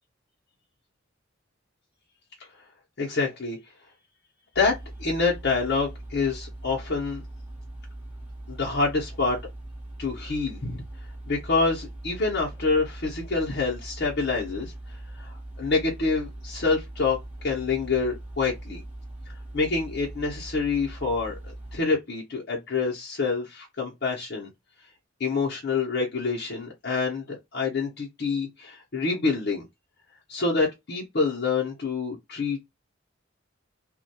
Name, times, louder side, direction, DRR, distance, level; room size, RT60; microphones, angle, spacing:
voice 1, 3.0-3.6 4.5-4.7 5.0-7.2 8.5-9.4 10.0-10.8 11.3-14.7 15.1-17.2 17.4-18.8 19.5-24.5 25.2-29.6 30.3-32.7, left 4 dB, 55° left, 0.7 m, -27 dB
sound 1, 4.5-21.8, right 1 dB, 10° right, 1.0 m, -41 dB
2.2 x 2.2 x 2.6 m
head